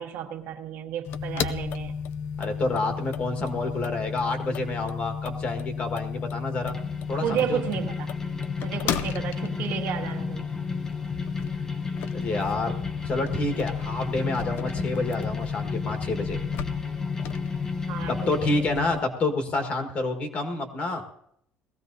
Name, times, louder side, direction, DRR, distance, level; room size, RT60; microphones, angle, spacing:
voice 1, 0.0-2.0 7.2-8.1 8.6-10.5 17.9-18.5, right 9 dB, 65° right, 3 dB, 1.4 m, -32 dB
sound 1, 1.1-19.0, left 6 dB, 55° left, 0.6 m, -33 dB
voice 2, 2.4-6.8 7.1-7.6 12.1-12.7 13.0-16.4 18.1-21.0, left 2 dB, 35° left, 5 dB, 1.4 m, -28 dB
sound 2, 6.6-18.6, left 4 dB, 10° left, 0.6 m, -34 dB
19.5 x 15.0 x 2.6 m, 0.72 s
cardioid pair, 175°, 4 cm